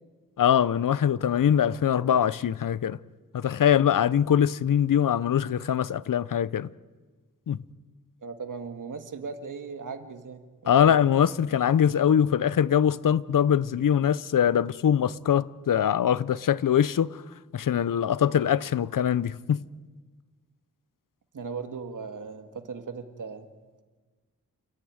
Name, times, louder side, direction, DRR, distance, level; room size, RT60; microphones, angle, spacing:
voice 1, 0.4-3.0 3.3-6.7 7.5-7.6 10.7-17.2 17.5-19.6, left 9 dB, 80° left, 0.7 m, -23 dB
voice 2, 8.2-10.9 21.3-23.5, right 5 dB, 70° right, 1.9 m, -38 dB
29.0 x 14.0 x 9.6 m
wide cardioid pair, 140°, 32 cm